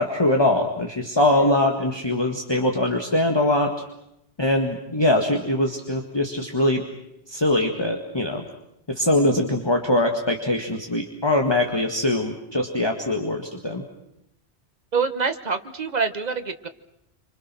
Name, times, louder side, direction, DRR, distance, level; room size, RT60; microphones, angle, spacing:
voice 1, 0.0-3.7 4.4-6.8 7.3-8.4 8.9-13.8, left 1 dB, 25° left, 2 dB, 2.0 m, -22 dB
voice 2, 14.9-16.7, right 5 dB, 40° right, 9 dB, 1.4 m, -25 dB
27.5 x 26.0 x 6.2 m, 0.82 s
omnidirectional pair, 1.1 m